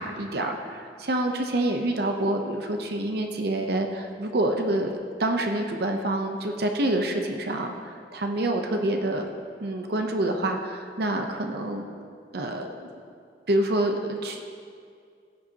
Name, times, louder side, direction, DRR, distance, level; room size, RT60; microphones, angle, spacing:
voice 1, 0.0-9.3 9.6-11.9 12.3-12.9 13.5-14.4, right 1 dB, 60° right, 4 dB, 0.8 m, -27 dB
15.5 x 9.5 x 2.9 m, 2.2 s
head